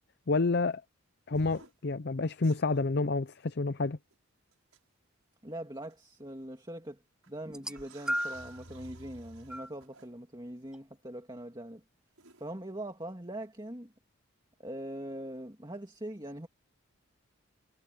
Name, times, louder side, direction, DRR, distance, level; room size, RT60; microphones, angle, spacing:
voice 1, 0.3-0.8 1.3-4.0, left 3 dB, 50° left, 0.6 m, -29 dB
sound 1, 1.3-1.7 2.4-2.8 4.1-4.2 4.7-4.8 5.9-6.0 7.2-7.3 7.7-10.1 12.2-12.4, right 2 dB, 90° right, 6.7 m, -52 dB
voice 2, 5.4-7.0 7.3-11.8 12.4-13.9 14.6-16.5, right 1 dB, 20° right, 2.2 m, -42 dB
sound 2, 7.5-8.6 9.5-9.7 10.7-10.8, equal, 5° right, 2.9 m, -35 dB
head